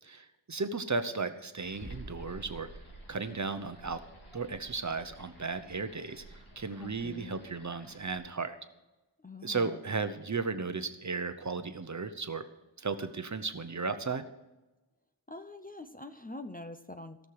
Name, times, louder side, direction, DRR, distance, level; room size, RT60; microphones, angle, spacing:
voice 1, 0.0-2.7 3.1-4.0 4.3-6.2 6.6-8.5 9.4-12.4 12.8-14.2, right 4 dB, 35° right, 9 dB, 0.9 m, -35 dB
sound 1, 1.6-8.2, right 1 dB, 75° left, 3.5 m, -50 dB
voice 2, 6.8-7.4 9.2-9.8 15.3-17.3, left 2 dB, 20° left, 8 dB, 0.7 m, -45 dB
17.0 x 6.6 x 4.8 m, 1.1 s
wide cardioid pair, 75°, 48 cm